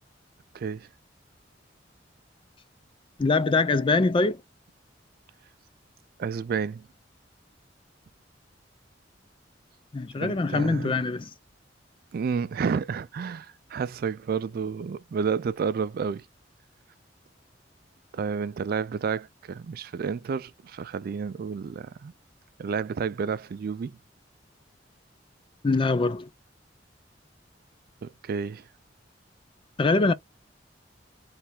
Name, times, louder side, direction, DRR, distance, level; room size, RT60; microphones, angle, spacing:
voice 1, 0.5-0.9 6.2-6.9 10.2-11.0 12.1-16.3 18.1-22.1 22.6-24.0 28.0-28.6, right 6 dB, 55° right, 0.3 m, -30 dB
voice 2, 3.2-4.4 9.9-11.3 25.6-26.3 29.8-30.1, left 3 dB, 30° left, 0.5 m, -23 dB
3.3 x 2.3 x 4.3 m
head